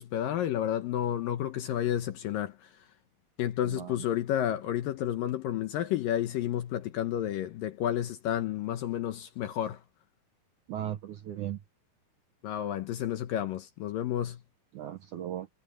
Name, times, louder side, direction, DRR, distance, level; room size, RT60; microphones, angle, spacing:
voice 1, 0.0-2.7 3.4-9.8 12.4-14.4, left 11 dB, 75° left, 2.3 m, -31 dB
voice 2, 3.7-4.1 10.7-11.6 14.7-15.5, right 11 dB, 65° right, 2.0 m, -37 dB
omnidirectional pair, 4.8 m